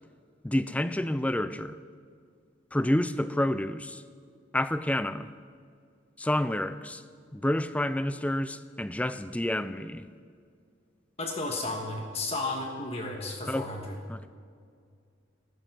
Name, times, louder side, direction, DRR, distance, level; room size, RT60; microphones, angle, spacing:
voice 1, 0.4-1.8 2.7-4.0 4.5-5.3 6.2-7.0 7.3-10.1 13.5-13.7 14.1-14.3, left 1 dB, 5° left, 0.4 m, -29 dB
voice 2, 11.2-14.0, left 2 dB, 35° left, 1.4 m, -33 dB
14.5 x 13.0 x 6.0 m
head